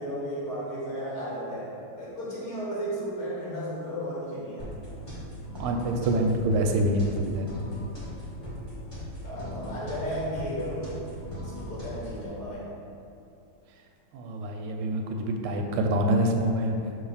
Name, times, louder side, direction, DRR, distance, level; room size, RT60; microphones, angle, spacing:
voice 1, 0.0-4.7 9.2-11.0 11.4-12.6, equal, 45° left, -7 dB, 2.1 m, -34 dB
sound 1, 4.6-12.3, equal, 20° left, 1.0 m, -39 dB
voice 2, 5.6-7.5 14.1-17.0, right 1 dB, 85° right, 3 dB, 1.5 m, -26 dB
6.3 x 3.0 x 5.4 m, 2.6 s
omnidirectional pair, 2.4 m